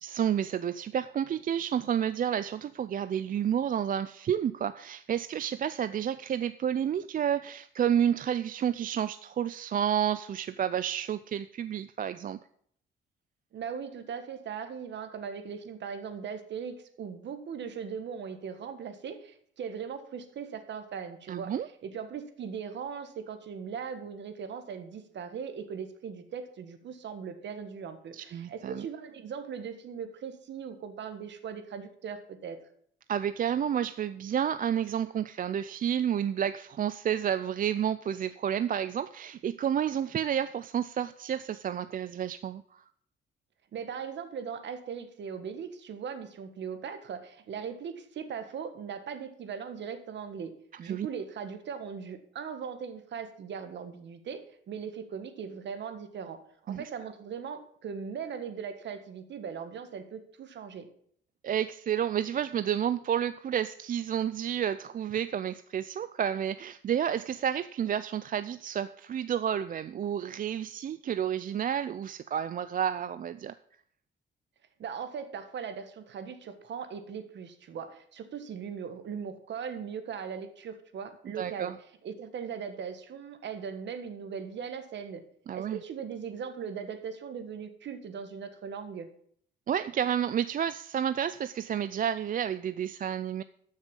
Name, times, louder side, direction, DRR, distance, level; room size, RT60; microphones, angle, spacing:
voice 1, 0.0-12.4 21.3-21.7 28.1-28.9 33.1-42.8 50.7-51.1 56.7-56.9 61.4-73.5 81.4-81.8 85.5-85.8 89.7-93.4, right 9 dB, 45° right, 14 dB, 0.4 m, -30 dB
voice 2, 13.5-21.5 21.8-32.6 43.7-50.5 50.8-56.4 56.6-60.9 74.8-81.7 82.0-85.2 85.5-89.1, right 7 dB, 65° right, 9 dB, 1.5 m, -39 dB
13.0 x 6.5 x 5.4 m, 0.64 s
cardioid pair, 90°, 20 cm